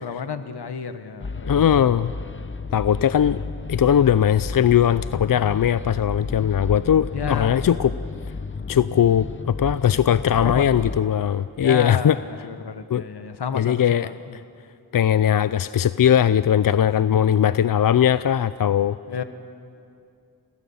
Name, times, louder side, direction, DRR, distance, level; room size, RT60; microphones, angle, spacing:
voice 1, 0.0-1.8 7.1-7.9 10.4-10.9 11.6-14.4 17.1-17.5 19.1-19.2, left 6 dB, 80° left, 9 dB, 1.4 m, -31 dB
sound 1, 1.2-11.0, left 4 dB, 30° left, 0.8 m, -32 dB
voice 2, 1.5-2.1 2.7-3.4 3.7-7.9 8.7-12.2 12.9-13.0 13.5-14.4 14.9-19.0, left 9 dB, 60° left, 14 dB, 0.5 m, -19 dB
30.0 x 17.5 x 7.2 m, 2.5 s
wide cardioid pair, 80°, 39 cm